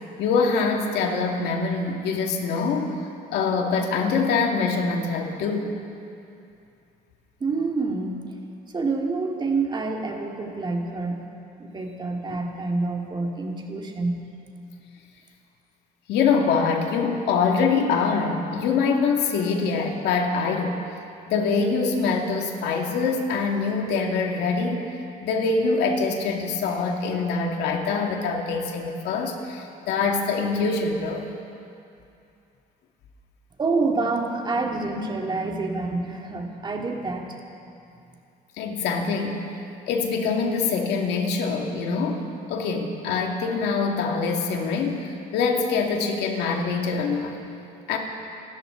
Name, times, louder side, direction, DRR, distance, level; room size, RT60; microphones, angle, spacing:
voice 1, 0.2-3.0 3.3-5.7 12.3-12.4 16.1-20.8 21.3-24.9 25.2-31.3 38.6-39.5 39.9-47.4 47.9-48.0, left 4 dB, 85° left, 1 dB, 2.2 m, -24 dB
voice 2, 7.4-8.2 8.7-11.3 11.6-14.2 33.6-37.4, right 3 dB, 25° right, 1 dB, 2.2 m, -27 dB
28.0 x 13.0 x 3.9 m, 2.6 s
cardioid pair, 110°, 17 cm